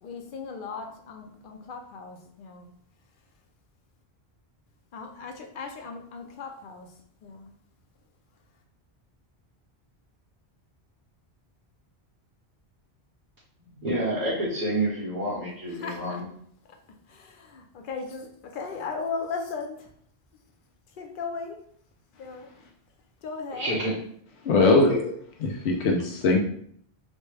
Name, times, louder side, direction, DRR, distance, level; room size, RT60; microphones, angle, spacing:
voice 1, 0.0-2.7 4.9-6.9 7.2-7.5 15.8-16.2 17.1-19.9 21.0-21.6 22.2-22.5 23.2-23.7, left 4 dB, 60° left, 4 dB, 0.7 m, -37 dB
voice 2, 13.7-16.2 23.5-24.0 24.9-25.0, right 1 dB, 45° right, -11 dB, 1.4 m, -28 dB
voice 3, 24.4-25.1 25.4-26.4, left 3 dB, 90° left, 1 dB, 0.9 m, -21 dB
4.1 x 2.2 x 3.2 m, 0.63 s
omnidirectional pair, 1.1 m